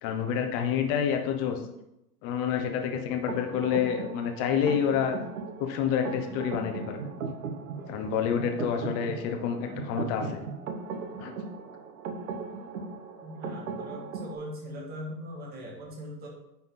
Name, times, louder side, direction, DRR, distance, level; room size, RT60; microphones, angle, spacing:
voice 1, 0.0-1.6 2.2-5.2 5.6-7.0 7.9-10.4 11.2-11.3, left 8 dB, 25° left, 5 dB, 0.9 m, -28 dB
sound 1, 3.3-14.3, right 5 dB, 60° right, 1.2 m, -38 dB
voice 2, 9.4-10.1 13.2-16.3, equal, 20° right, -1 dB, 1.8 m, -41 dB
9.4 x 4.4 x 3.8 m, 0.87 s
hypercardioid pair, 145°, 48 cm